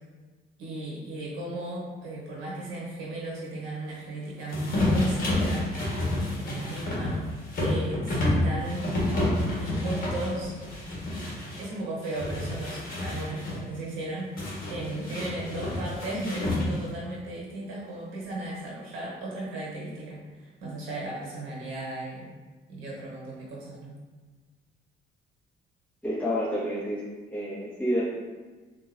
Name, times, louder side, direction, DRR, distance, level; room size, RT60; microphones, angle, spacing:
voice 1, 0.6-5.7 6.1-7.2 7.6-8.9 9.5-10.5 11.6-14.3 14.7-22.3 22.7-23.9, right 1 dB, 90° right, -4 dB, 1.1 m, -35 dB
sound 1, 4.5-11.6 12.0-13.6 14.4-17.0, left 1 dB, 45° left, 1.3 m, -29 dB
voice 2, 26.0-27.0 27.3-28.0, equal, 5° left, -10 dB, 1.2 m, -29 dB
3.7 x 2.7 x 2.5 m, 1.3 s
cardioid pair, 90°, 20 cm